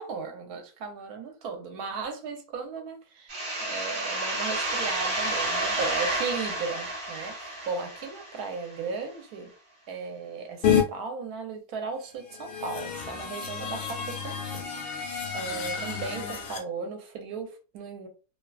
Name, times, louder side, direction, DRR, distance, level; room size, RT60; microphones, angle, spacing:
voice 1, 0.0-9.5 9.9-18.1, right 4 dB, 70° right, 1.1 m, -36 dB
sound 1, 3.3-8.8, right 2 dB, 50° right, 1.1 m, -31 dB
sound 2, 10.6-10.8 12.2-16.6, left 7 dB, 90° left, 0.5 m, -29 dB
2.8 x 2.3 x 2.3 m
omnidirectional pair, 1.9 m